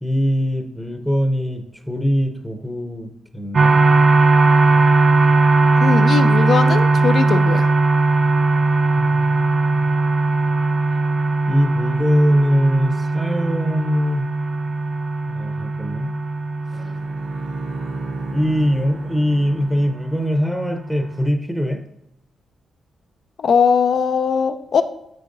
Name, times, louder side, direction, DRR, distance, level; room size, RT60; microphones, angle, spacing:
voice 1, 0.0-3.8 9.0-9.9 11.5-14.3 15.3-16.1 18.3-21.8, equal, ahead, 5 dB, 0.8 m, -22 dB
sound 1, 3.5-21.3, right 3 dB, 35° right, 0.5 m, -19 dB
voice 2, 5.8-7.7 23.4-24.8, left 6 dB, 60° left, 9 dB, 0.5 m, -19 dB
Bowed string instrument, 16.7-20.3, right 3 dB, 75° right, 1.7 m, -34 dB
7.5 x 6.5 x 2.6 m, 0.81 s
cardioid pair, 100°, 0 cm